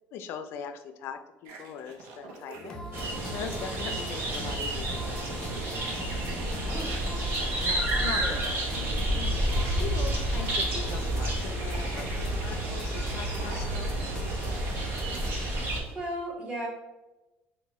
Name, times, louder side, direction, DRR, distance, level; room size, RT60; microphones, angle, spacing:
voice 1, 0.1-2.8 3.3-5.9 8.0-13.9, left 7 dB, 60° left, 8 dB, 0.3 m, -41 dB
sound 1, 1.5-3.8 4.2-8.6 9.1-14.7 14.9-16.0, right 4 dB, 80° right, 0.6 m, -48 dB
sound 2, 2.5-15.3, equal, 15° left, 0.6 m, -43 dB
sound 3, 2.9-15.8, right 1 dB, 50° right, 0.8 m, -30 dB
voice 2, 6.7-7.2 7.6-8.4 15.9-16.7, right 1 dB, 20° right, -2 dB, 1.0 m, -37 dB
4.5 x 2.2 x 3.0 m, 1.0 s
cardioid pair, 140°, 5 cm